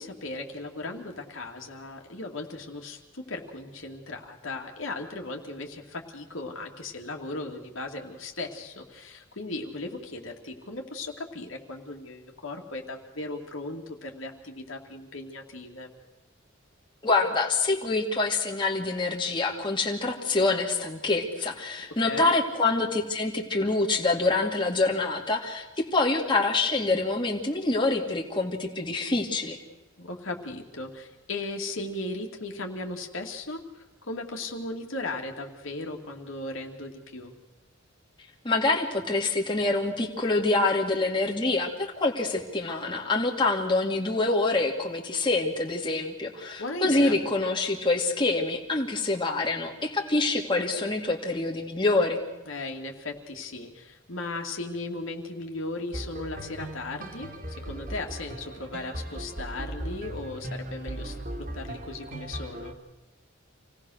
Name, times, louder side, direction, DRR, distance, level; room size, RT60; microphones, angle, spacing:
voice 1, 0.0-15.9 22.0-22.3 30.0-37.3 46.6-47.2 52.5-57.3 57.6-62.7, left 2 dB, 75° left, 2 dB, 2.6 m, -37 dB
voice 2, 17.0-29.6 38.4-52.2, left 3 dB, 25° left, 0 dB, 2.4 m, -26 dB
sound 1, 55.9-62.7, right 1 dB, 45° right, 2.3 m, -38 dB
27.0 x 18.0 x 6.5 m, 1.1 s
head